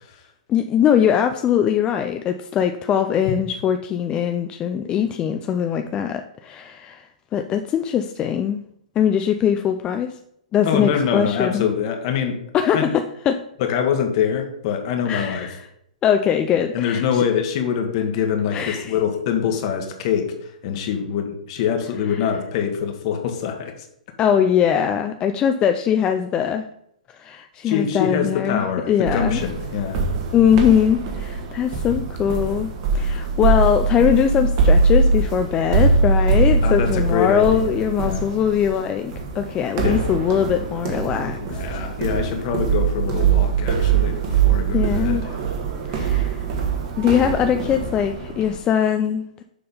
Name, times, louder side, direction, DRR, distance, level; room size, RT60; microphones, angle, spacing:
voice 1, 0.5-7.0 7.3-8.6 9.0-10.2 10.5-11.7 12.5-13.4 15.1-15.6 16.0-17.2 18.5-18.9 22.1-22.3 24.2-26.7 27.2-29.4 30.3-41.8 44.7-45.3 45.9-46.4 47.0-49.4, left 8 dB, 20° left, 7 dB, 0.4 m, -21 dB
voice 2, 10.6-12.4 12.7-12.9 13.6-15.5 16.7-20.3 20.6-23.7 27.6-30.0 36.6-38.2 39.8-40.0 41.3-45.4, left 8 dB, 45° left, 5 dB, 1.3 m, -24 dB
sound 1, 29.1-48.6, right 4 dB, 40° right, 1.4 m, -22 dB
6.8 x 3.7 x 5.4 m, 0.74 s
hypercardioid pair, 140°, 4 cm